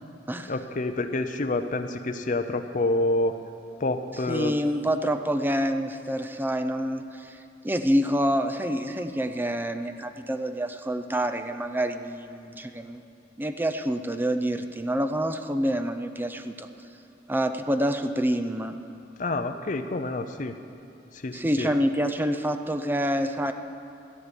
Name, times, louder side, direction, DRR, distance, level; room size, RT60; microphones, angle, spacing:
voice 1, 0.5-3.4 3.8-4.5 19.2-20.6 21.1-21.7, left 2 dB, 45° left, 7 dB, 0.6 m, -28 dB
voice 2, 4.3-7.4 7.6-13.0 13.4-16.7 17.3-18.8 21.3-23.5, equal, 10° right, 8 dB, 0.6 m, -27 dB
14.0 x 6.8 x 9.8 m, 2.7 s
head